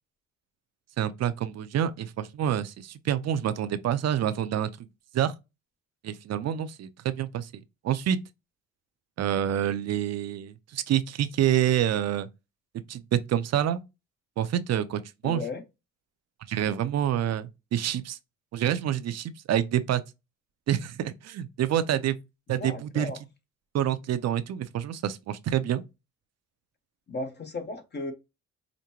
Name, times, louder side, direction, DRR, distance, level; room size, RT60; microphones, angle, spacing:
voice 1, 1.0-4.9 5.1-5.3 6.0-8.2 9.2-12.3 12.9-13.8 14.4-15.4 16.5-18.2 18.5-20.0 20.7-22.2 22.5-23.1 23.7-25.8, right 10 dB, 60° right, 0.6 m, -27 dB
voice 2, 15.2-15.6 22.6-23.2 27.1-28.1, left 3 dB, 35° left, 0.8 m, -35 dB
5.0 x 2.2 x 2.9 m
cardioid pair, 90°, 30 cm